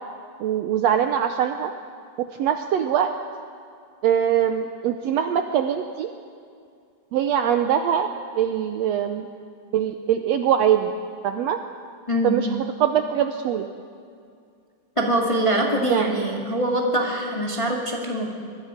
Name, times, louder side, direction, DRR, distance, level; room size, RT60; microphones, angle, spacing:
voice 1, 0.4-1.7 2.3-3.1 4.0-6.1 7.1-9.3 9.7-10.9 11.2-11.6 12.2-13.7 15.8-16.3, right 9 dB, 70° right, 7 dB, 1.7 m, -22 dB
voice 2, 12.1-12.4 14.9-18.3, right 1 dB, 10° left, -1 dB, 1.7 m, -23 dB
24.5 x 21.5 x 5.1 m, 2.3 s
omnidirectional pair, 3.5 m